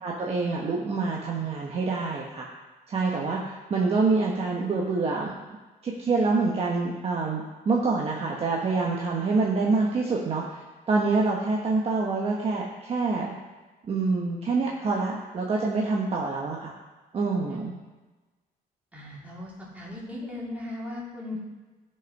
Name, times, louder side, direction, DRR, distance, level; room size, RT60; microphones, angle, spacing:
voice 1, 0.0-2.5 2.9-5.3 5.8-13.3 13.9-16.7 17.1-17.7, right 3 dB, 40° right, -2 dB, 1.2 m, -26 dB
voice 2, 18.9-21.4, left 2 dB, 10° right, -6 dB, 3.2 m, -37 dB
13.0 x 5.7 x 5.3 m, 1.2 s
cardioid pair, 140°, 16 cm